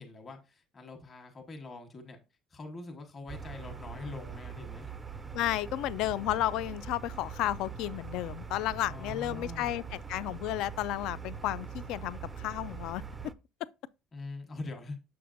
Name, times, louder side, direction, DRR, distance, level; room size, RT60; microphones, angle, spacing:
voice 1, 0.0-2.2 2.5-4.9 8.7-9.7 14.1-15.0, left 3 dB, 25° left, 1.1 m, -44 dB
sound 1, 3.3-13.3, right 6 dB, 10° right, 0.4 m, -42 dB
voice 2, 5.3-13.3, left 14 dB, 60° left, 0.3 m, -33 dB
6.8 x 6.6 x 2.5 m
cardioid pair, 170°, 0 cm